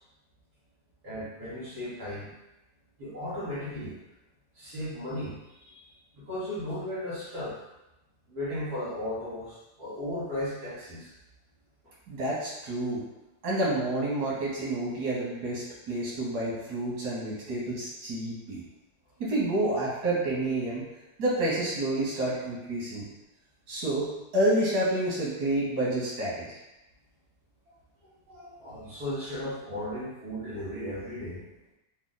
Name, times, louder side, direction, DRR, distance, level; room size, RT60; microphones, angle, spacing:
voice 1, 1.0-2.3 3.0-4.0 4.5-5.8 6.1-7.6 8.3-11.1 19.2-19.3 28.3-31.4, left 1 dB, 70° right, -12 dB, 1.8 m, -36 dB
voice 2, 12.1-13.0 13.4-18.6 19.2-20.8 21.2-23.1 23.7-26.6, right 1 dB, 85° right, -6 dB, 1.6 m, -29 dB
3.6 x 2.1 x 3.9 m, 0.95 s
omnidirectional pair, 1.7 m